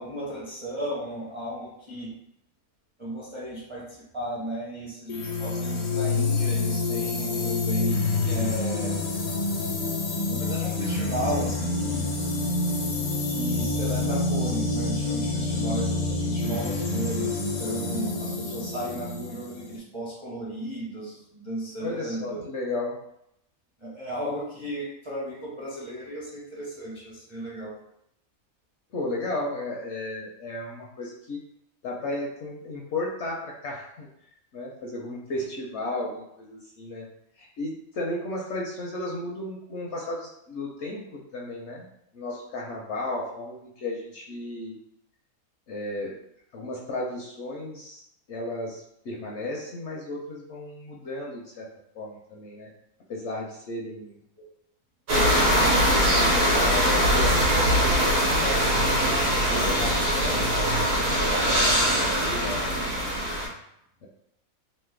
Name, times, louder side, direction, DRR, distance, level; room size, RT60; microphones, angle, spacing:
voice 1, 0.0-2.1 3.0-9.0 10.2-12.1 13.2-22.4 23.8-27.8, right 1 dB, 30° right, -7 dB, 0.6 m, -35 dB
sound 1, 5.1-19.8, left 3 dB, 85° left, 1.1 m, -27 dB
voice 2, 21.8-23.0 28.9-31.4 31.8-34.1 34.5-37.1 37.4-41.9 42.1-44.8 45.7-46.2 46.5-48.0 48.3-51.7 51.9-52.7 53.1-54.2 55.1-60.8 61.3-63.1 64.0-64.1, left 2 dB, 65° left, -3 dB, 0.7 m, -34 dB
sound 2, 55.1-63.5, equal, 70° right, 1.3 m, -22 dB
3.1 x 2.0 x 3.2 m, 0.77 s
omnidirectional pair, 1.5 m